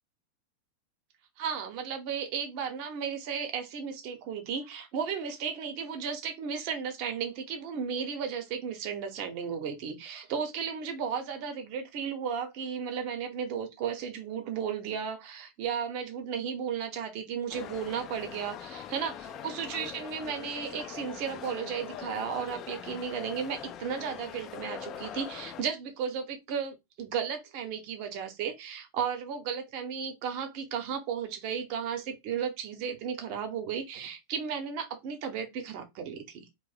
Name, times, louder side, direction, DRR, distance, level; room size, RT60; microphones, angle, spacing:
voice 1, 1.4-36.5, right 7 dB, 45° right, 0.8 m, -34 dB
sound 1, 17.5-25.6, left 9 dB, 35° left, 0.3 m, -42 dB
2.7 x 2.1 x 4.0 m
figure-of-eight pair, 90°, 0 cm